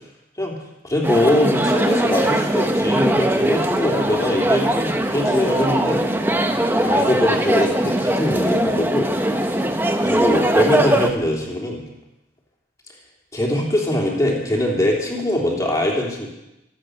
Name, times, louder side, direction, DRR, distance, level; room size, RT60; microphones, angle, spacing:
voice 1, 0.8-6.0 6.8-9.6 10.0-11.8 13.3-16.3, left 1 dB, 20° left, -1 dB, 3.2 m, -22 dB
sound 1, 1.0-11.1, right 1 dB, 10° right, 0.9 m, -20 dB
23.5 x 8.6 x 6.5 m, 0.91 s
head